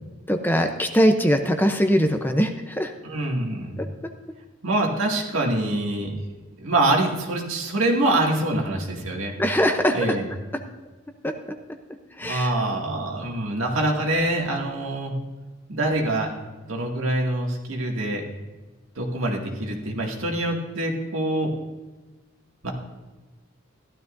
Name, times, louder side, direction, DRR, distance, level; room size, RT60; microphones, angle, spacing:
voice 1, 0.3-2.9 3.8-4.1 9.4-10.2 11.2-11.3 12.2-12.5, equal, 10° left, 5 dB, 0.6 m, -22 dB
voice 2, 3.0-3.9 4.6-6.1 6.6-9.3 9.9-10.3 12.2-15.1 15.7-16.3 16.7-18.2 19.0-21.5 22.6-22.7, right 1 dB, 85° right, 0 dB, 2.2 m, -25 dB
15.0 x 12.5 x 2.6 m, 1.2 s
head